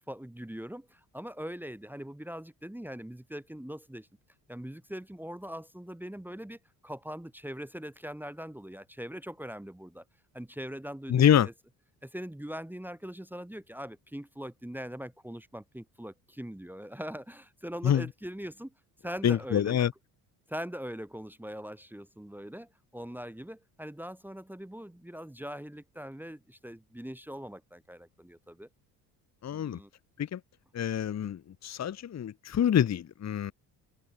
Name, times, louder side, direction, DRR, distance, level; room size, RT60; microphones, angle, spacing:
voice 1, 0.1-4.1 4.5-10.0 10.3-11.5 12.0-18.7 19.0-19.8 20.5-28.7 29.5-29.9, equal, 5° right, 2.0 m, -41 dB
voice 2, 11.1-11.5 17.8-18.0 19.2-19.9 29.4-29.8 30.2-30.4 30.7-33.5, left 9 dB, 35° left, 1.1 m, -26 dB
hypercardioid pair, 60°, 46 cm